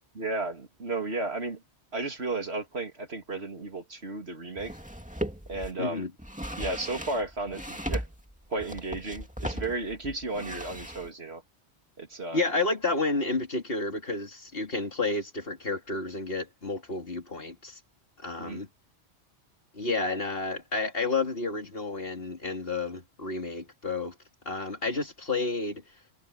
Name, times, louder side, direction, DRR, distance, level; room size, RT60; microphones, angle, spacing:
voice 1, 0.1-1.6 1.9-4.8 5.5-6.1 6.6-8.1 8.5-11.4 12.0-12.4 18.4-18.6, right 2 dB, 65° right, 3.0 m, -33 dB
sound 1, 4.6-5.7 6.2-11.1, equal, 5° right, 2.5 m, -37 dB
voice 2, 5.8-6.1 12.3-17.8 18.2-18.7 19.7-24.1 24.4-25.8, left 3 dB, 55° left, 3.2 m, -30 dB
omnidirectional pair, 1.1 m